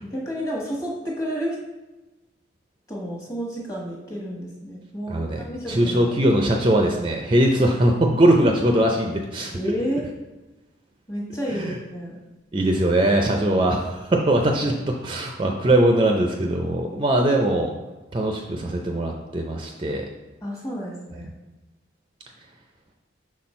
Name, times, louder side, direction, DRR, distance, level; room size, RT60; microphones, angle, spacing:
voice 1, 0.0-1.6 2.9-6.1 9.5-10.1 11.1-12.2 20.4-21.3, equal, 20° left, -2 dB, 1.2 m, -31 dB
voice 2, 5.1-9.5 11.5-11.7 12.5-17.7 18.1-20.0, right 1 dB, 25° right, 2 dB, 0.4 m, -21 dB
6.1 x 4.3 x 4.2 m, 1.1 s
head